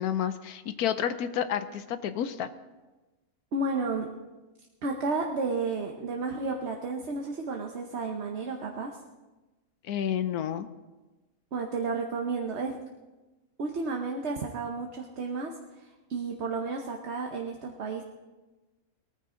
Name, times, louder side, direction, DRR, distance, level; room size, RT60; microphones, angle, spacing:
voice 1, 0.0-2.5 9.8-10.7, left 9 dB, 80° left, 11 dB, 1.2 m, -30 dB
voice 2, 3.5-4.1 4.8-9.0 11.5-12.8 13.6-18.0, right 3 dB, 50° right, 2 dB, 1.1 m, -32 dB
19.0 x 14.0 x 3.8 m, 1.2 s
omnidirectional pair, 1.6 m